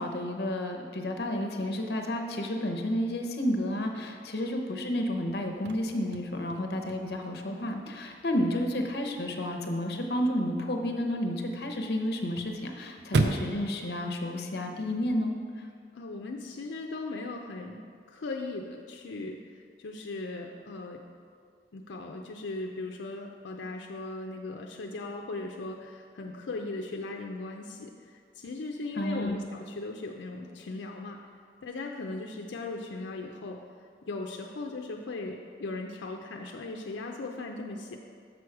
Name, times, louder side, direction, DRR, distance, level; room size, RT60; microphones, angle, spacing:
voice 1, 0.0-15.3 29.0-29.4, left 1 dB, 60° left, 3 dB, 0.8 m, -31 dB
Chirp tweet / Car / Slam, 5.3-15.3, right 3 dB, 65° right, 0.5 m, -37 dB
voice 2, 15.9-17.8 18.1-21.0 21.7-27.9 28.4-31.2 31.6-33.6 34.1-38.0, left 2 dB, 85° left, 2 dB, 0.5 m, -38 dB
6.9 x 6.2 x 4.7 m, 2.2 s
head